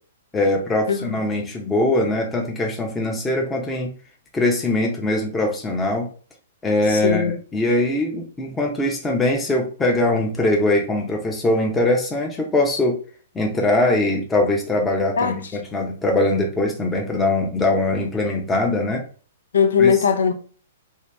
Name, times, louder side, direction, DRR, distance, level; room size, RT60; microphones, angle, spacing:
voice 1, 0.3-3.9 4.3-6.1 6.6-13.0 13.3-19.0 19.8-19.9, left 2 dB, 10° left, 0.7 m, -22 dB
voice 2, 0.9-1.2 6.9-7.4 15.2-15.4 19.5-20.3, left 6 dB, 85° left, 0.7 m, -19 dB
2.8 x 2.8 x 3.3 m
hypercardioid pair, 140°, 0 cm